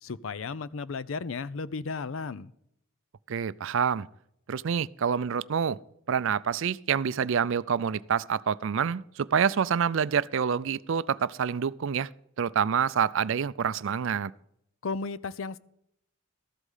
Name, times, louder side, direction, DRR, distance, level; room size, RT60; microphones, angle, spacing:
voice 1, 0.0-2.5 14.8-15.6, left 4 dB, 65° left, 0.5 m, -34 dB
voice 2, 3.3-4.1 4.5-5.8 6.1-12.1 12.4-14.3, right 7 dB, 65° right, 0.4 m, -27 dB
13.5 x 8.2 x 5.5 m
head